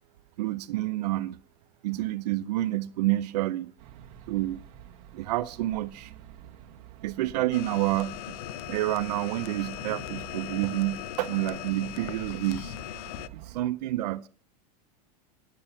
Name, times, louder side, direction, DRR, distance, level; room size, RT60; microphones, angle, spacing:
voice 1, 0.4-1.4 1.8-3.7 4.3-4.6 5.1-6.1 7.0-8.4 8.7-12.7 13.3-14.3, right 16 dB, 80° right, 0.6 m, -29 dB
sound 1, 3.8-13.6, right 10 dB, 60° right, 1.7 m, -49 dB
sound 2, 7.5-13.3, left 15 dB, 70° left, 0.7 m, -39 dB
10.5 x 8.5 x 5.6 m
supercardioid pair, 130°, 20 cm